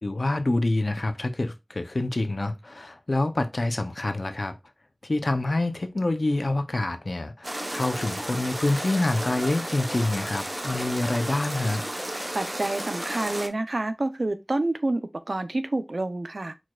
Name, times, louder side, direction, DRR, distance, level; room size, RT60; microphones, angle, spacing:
voice 1, 0.0-4.5 5.0-11.8, left 2 dB, 75° left, 0.7 m, -27 dB
sound 1, 7.4-13.5, right 1 dB, 35° right, 0.9 m, -33 dB
voice 2, 12.1-16.5, right 2 dB, 80° right, 0.6 m, -28 dB
4.6 x 4.2 x 2.4 m
wide cardioid pair, 45°, 0 cm